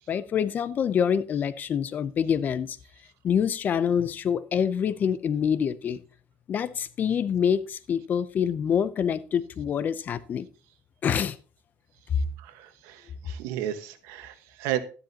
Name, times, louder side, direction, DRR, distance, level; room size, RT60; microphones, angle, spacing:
voice 1, 0.1-2.7 3.2-6.0 6.5-10.5 11.0-11.3, left 8 dB, 35° left, 0.6 m, -26 dB
voice 2, 12.4-14.8, right 12 dB, 85° right, 1.4 m, -33 dB
12.5 x 10.5 x 2.9 m
cardioid pair, 155°, 5 cm